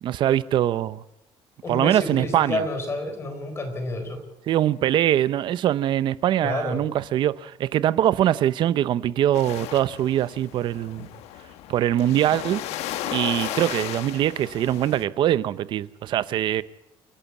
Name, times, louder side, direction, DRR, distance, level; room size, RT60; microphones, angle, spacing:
voice 1, 0.0-1.0 1.7-2.6 4.5-11.1 11.7-12.6 13.1-16.6, right 12 dB, 50° right, 0.7 m, -23 dB
voice 2, 1.6-4.2 6.4-6.8, left 2 dB, 25° left, 4.2 m, -29 dB
sound 1, 9.3-15.0, left 12 dB, 90° left, 1.3 m, -35 dB
29.5 x 11.5 x 8.4 m
cardioid pair, 170°, 10 cm